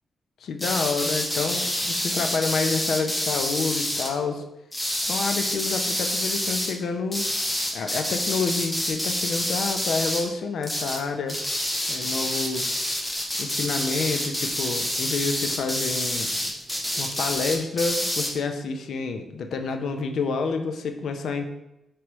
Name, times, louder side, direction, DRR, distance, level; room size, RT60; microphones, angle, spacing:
voice 1, 0.4-4.4 5.0-7.3 7.7-11.4 11.9-12.8 13.4-16.5 17.0-21.4, left 4 dB, 70° left, 6 dB, 0.4 m, -28 dB
sound 1, 0.6-4.1 4.7-6.7 7.1-10.3 10.6-11.0 11.3-18.3, left 1 dB, 10° left, 0.5 m, -28 dB
3.0 x 3.0 x 4.6 m, 0.91 s
wide cardioid pair, 150°, 0 cm